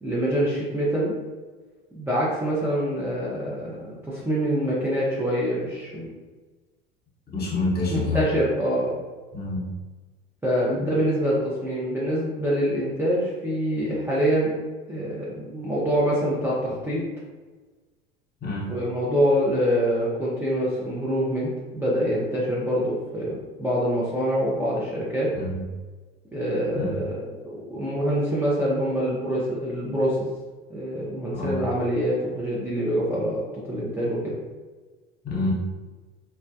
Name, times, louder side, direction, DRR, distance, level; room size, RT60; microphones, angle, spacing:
voice 1, 0.0-1.1 1.9-6.1 7.9-9.0 10.4-14.6 14.9-17.1 18.7-25.3 26.3-30.3 30.7-33.4 33.7-34.4, equal, 10° right, -7 dB, 0.5 m, -25 dB
voice 2, 7.3-8.2 9.3-9.7 18.4-18.7 25.3-25.6 26.7-27.0 31.3-31.6 35.2-35.5, left 2 dB, 35° left, -4 dB, 1.0 m, -27 dB
2.2 x 2.1 x 2.6 m, 1.3 s
hypercardioid pair, 75°, 29 cm